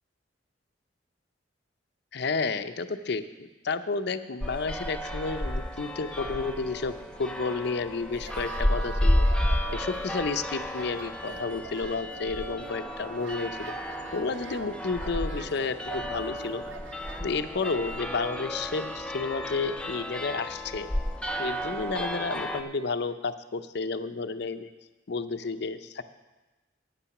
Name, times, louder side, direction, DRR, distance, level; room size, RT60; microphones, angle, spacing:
voice 1, 2.1-9.3 9.7-13.8 14.1-16.6 17.2-20.9 21.4-24.7 25.1-26.0, left 4 dB, 65° left, 10 dB, 0.6 m, -31 dB
sound 1, 4.4-22.6, equal, 5° left, 0.6 m, -32 dB
sound 2, 8.1-18.0, right 4 dB, 80° right, 1.0 m, -46 dB
10.0 x 9.1 x 5.9 m, 1.1 s
head